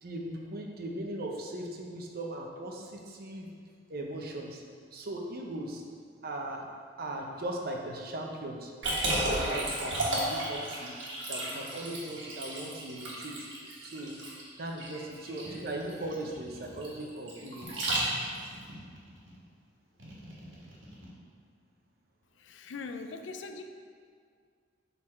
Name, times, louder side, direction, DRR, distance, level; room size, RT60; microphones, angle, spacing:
voice 1, 0.0-3.5 3.9-4.6 4.9-5.8 6.2-6.7 7.0-8.7 9.0-10.9 11.3-13.3 13.8-14.2 14.6-17.9, right 1 dB, 55° right, 0 dB, 0.8 m, -38 dB
Liquid, 8.8-18.5, right 1 dB, 70° right, 1.5 m, -33 dB
sound 1, 15.4-17.0 17.6-19.4 20.0-21.1, equal, 90° right, 1.6 m, -49 dB
voice 2, 22.4-23.6, left 4 dB, 70° left, 7 dB, 0.4 m, -41 dB
6.5 x 4.0 x 4.3 m, 2.1 s
head